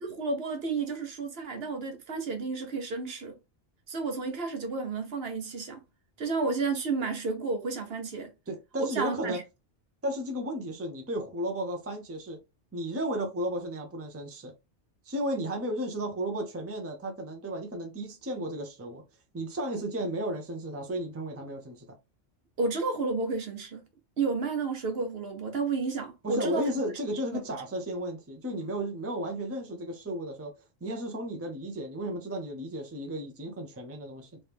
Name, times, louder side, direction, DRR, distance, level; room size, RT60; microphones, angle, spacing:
voice 1, 0.0-3.4 3.9-5.8 6.2-8.3 8.8-9.4 22.6-23.8 24.2-26.7 27.3-27.4, right 4 dB, 60° right, 1.1 m, -31 dB
voice 2, 8.5-9.4 10.0-12.4 12.7-14.5 15.1-19.0 19.3-21.9 26.2-30.5 30.8-34.4, right 1 dB, 15° right, 0.6 m, -34 dB
3.2 x 2.8 x 3.4 m
omnidirectional pair, 1.2 m